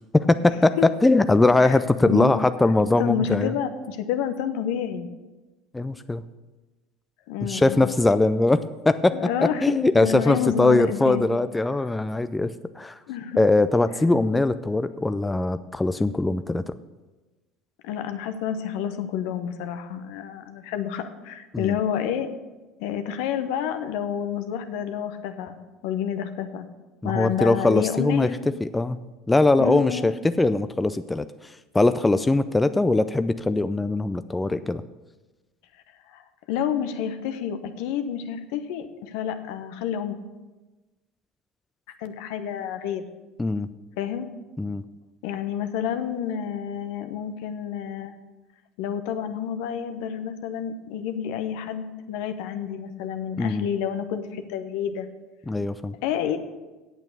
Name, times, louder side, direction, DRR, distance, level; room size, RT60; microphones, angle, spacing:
voice 1, 0.1-0.8 1.0-3.5 5.7-6.2 7.4-8.6 8.9-9.2 9.4-12.9 13.4-16.6 21.5-21.7 27.0-28.3 28.6-29.0 29.3-31.3 31.7-34.8 43.4-43.7 44.6-44.8 53.4-53.7 55.5-55.9, left 2 dB, 10° left, 11 dB, 0.4 m, -21 dB
voice 2, 3.0-5.1 7.3-7.9 9.1-11.3 13.1-13.4 17.8-22.3 22.8-25.6 25.8-26.7 27.0-28.4 29.6-30.1 36.1-40.2 42.0-43.0 44.0-44.3 45.2-48.1 48.8-55.1 56.0-56.4, left 9 dB, 65° left, 9 dB, 0.9 m, -29 dB
8.9 x 8.2 x 6.5 m, 1.2 s
hypercardioid pair, 70°, 0 cm